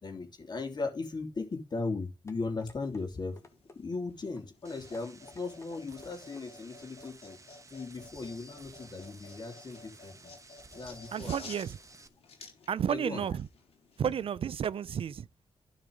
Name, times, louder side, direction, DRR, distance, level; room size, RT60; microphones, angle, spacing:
voice 1, 0.0-3.4 3.7-7.4 7.7-10.3 10.7-11.5 12.9-13.3, left 3 dB, 45° left, 3.1 m, -37 dB
sound 1, 2.3-3.0 3.4-3.8 4.4-4.5 4.9-5.7 6.0-6.5 7.0-7.2 7.6-7.7, left 2 dB, 30° left, 2.2 m, -54 dB
sound 2, 2.6-14.2, left 4 dB, 80° left, 3.8 m, -53 dB
sound 3, 4.6-12.1, right 2 dB, 30° right, 1.2 m, -54 dB
voice 2, 11.1-11.8 12.7-13.5 14.0-15.3, right 8 dB, 65° right, 0.5 m, -32 dB
12.5 x 4.8 x 5.1 m
cardioid pair, 85°, 10 cm